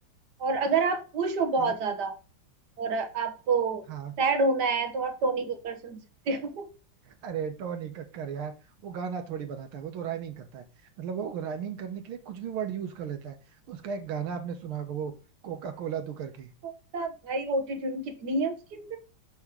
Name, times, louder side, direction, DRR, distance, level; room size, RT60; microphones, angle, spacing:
voice 1, 0.4-2.1 2.8-3.8 4.2-6.7 16.6-19.0, right 4 dB, 60° right, 1.4 m, -28 dB
voice 2, 7.0-15.1 15.4-16.5, right 7 dB, 80° right, 1.7 m, -35 dB
6.4 x 5.6 x 3.5 m
omnidirectional pair, 2.3 m